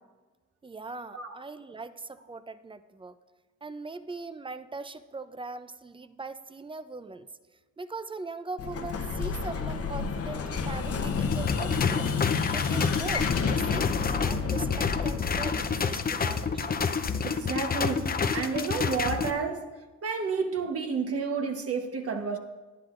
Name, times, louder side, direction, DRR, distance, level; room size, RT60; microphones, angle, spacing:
voice 1, 0.6-3.2 3.6-7.3 7.8-16.8, right 3 dB, 15° right, 0.6 m, -40 dB
Explosion, 8.6-17.2, left 5 dB, 50° left, 1.0 m, -31 dB
sound 1, 11.3-19.3, left 5 dB, 30° left, 0.7 m, -29 dB
voice 2, 17.2-19.7 20.0-22.4, right 5 dB, 50° right, 1.2 m, -30 dB
18.5 x 10.5 x 2.6 m
cardioid pair, 90°, 30 cm